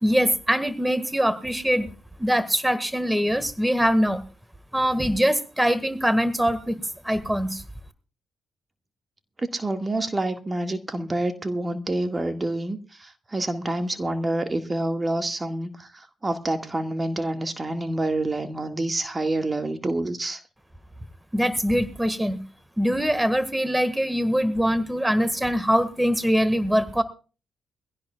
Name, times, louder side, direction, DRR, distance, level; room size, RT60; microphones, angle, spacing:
voice 1, 0.0-1.9 2.2-4.2 4.7-7.6 21.3-22.4 22.8-27.0, equal, 10° right, 1.8 m, -23 dB
voice 2, 9.4-20.4, right 2 dB, 30° right, 1.9 m, -27 dB
22.0 x 16.5 x 2.4 m
hypercardioid pair, 40°, 0 cm